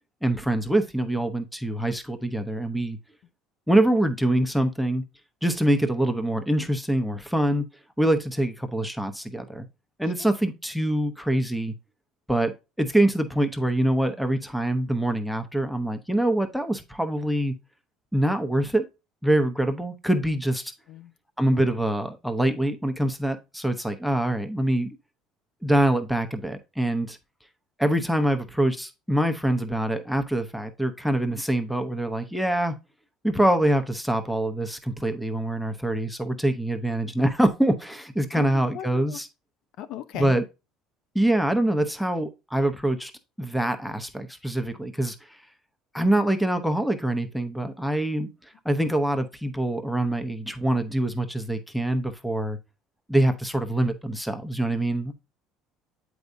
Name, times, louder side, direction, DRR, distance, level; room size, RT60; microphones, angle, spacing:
voice 1, 0.2-3.0 3.7-5.0 5.4-7.6 8.0-9.7 10.0-11.7 12.3-17.5 18.1-18.9 19.2-20.7 21.4-24.9 25.6-27.2 27.8-32.8 33.2-39.3 40.1-40.4 41.1-43.1 43.4-45.2 45.9-48.3 48.6-52.6 53.1-55.1, right 1 dB, ahead, 0.8 m, -24 dB
voice 2, 38.3-39.2 39.8-40.4, left 11 dB, 65° left, 0.6 m, -37 dB
7.8 x 4.7 x 2.6 m
supercardioid pair, 100°, 0 cm